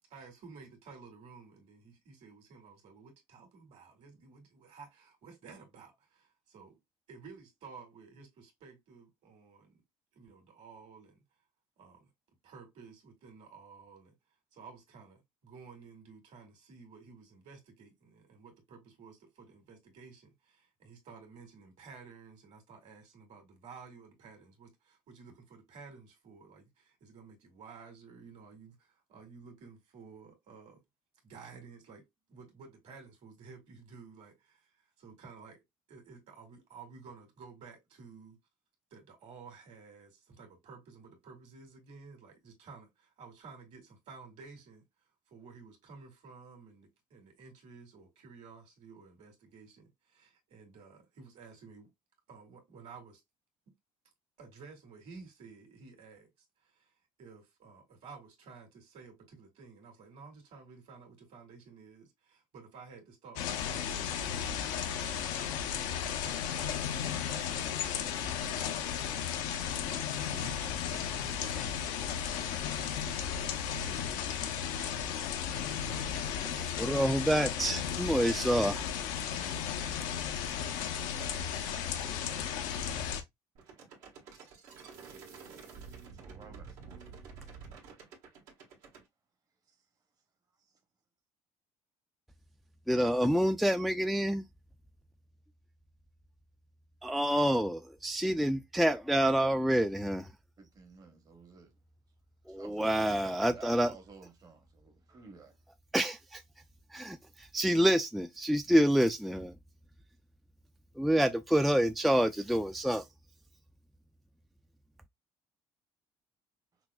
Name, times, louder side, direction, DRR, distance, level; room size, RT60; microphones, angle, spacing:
voice 1, 0.1-6.8 7.1-9.8 10.1-11.2 11.8-12.1 12.4-14.1 14.5-30.8 31.2-34.7 35.0-35.6 35.9-38.4 38.9-44.8 45.3-51.9 52.3-53.2 54.4-56.3 56.6-56.9 57.2-65.5 65.9-67.1 67.6-69.0 70.2-72.6 73.5-74.4, right 5 dB, 60° right, 2.1 m, -53 dB
sound 1, 63.4-83.2, left 8 dB, 85° left, 0.6 m, -34 dB
voice 2, 76.4-78.9 92.9-94.4 97.0-100.3 102.5-103.9 105.9-106.4 106.9-109.5 111.0-113.0, equal, ahead, 0.3 m, -28 dB
sound 2, 83.5-89.0, right 5 dB, 80° right, 1.5 m, -50 dB
voice 3, 86.2-87.1 100.6-101.7 102.5-105.5, right 4 dB, 30° right, 0.9 m, -53 dB
6.0 x 2.0 x 2.3 m
supercardioid pair, 90°, 13 cm